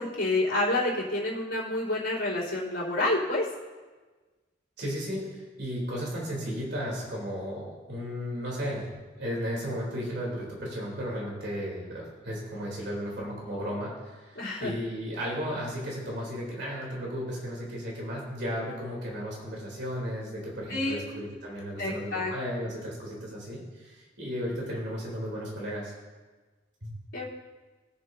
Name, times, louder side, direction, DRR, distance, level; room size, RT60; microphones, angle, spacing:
voice 1, 0.0-3.5 14.4-14.7 20.7-21.0 21.8-22.3 22.6-22.7 27.1-27.2, left 2 dB, 75° left, -8 dB, 3.5 m, -28 dB
voice 2, 4.8-8.8 9.2-25.9 26.8-26.9, equal, 65° right, -3 dB, 3.3 m, -34 dB
20.0 x 7.4 x 2.7 m, 1.3 s
head